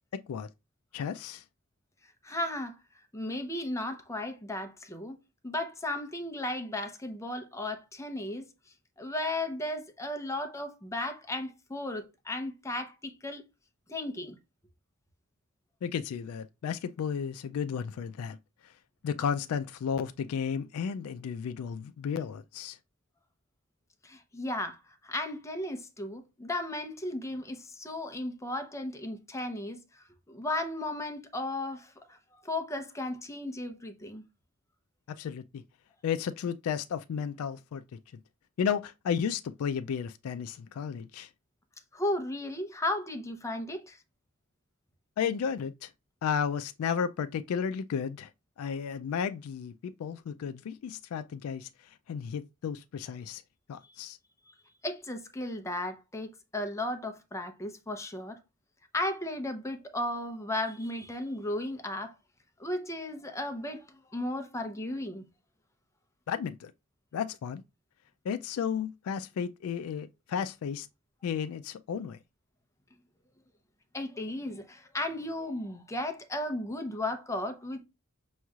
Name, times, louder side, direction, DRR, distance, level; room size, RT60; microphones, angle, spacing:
voice 1, 0.9-1.4 15.8-18.4 18.6-18.7 19.0-22.8 35.1-35.6 36.0-38.0 38.6-41.3 45.2-45.9 46.2-48.3 48.6-53.4 53.7-54.2 66.3-66.7 67.1-67.6 68.3-70.9 71.2-72.2, left 7 dB, 90° left, 0.3 m, -33 dB
voice 2, 2.2-2.8 3.1-5.2 5.4-8.5 9.0-13.4 13.9-14.4 24.0-32.2 32.4-34.2 41.9-44.0 54.5-54.6 54.8-58.4 58.9-62.1 62.6-63.8 64.1-65.3 73.9-77.8, left 1 dB, 15° left, 0.7 m, -35 dB
6.2 x 3.0 x 2.4 m
head